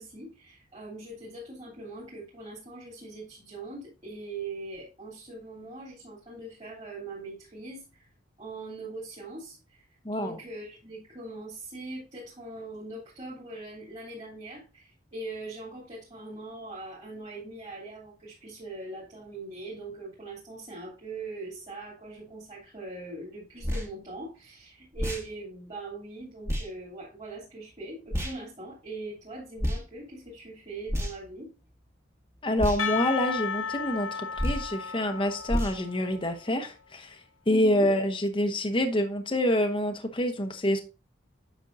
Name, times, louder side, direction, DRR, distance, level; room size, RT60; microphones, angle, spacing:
voice 1, 0.0-8.1 8.4-31.5 37.5-37.9, right 2 dB, 35° right, 3.1 m, -41 dB
voice 2, 10.0-10.4 32.4-37.2 37.5-40.8, left 1 dB, 25° left, 0.9 m, -27 dB
sound 1, 23.6-23.9 24.9-25.3 26.5-26.7 28.1-28.4 29.6-29.8 30.9-31.3 32.6-32.8 34.4-34.7 35.5-35.8, equal, 15° right, 1.4 m, -29 dB
Percussion, 32.8-36.7, left 6 dB, 85° left, 0.7 m, -34 dB
9.4 x 6.0 x 2.6 m
head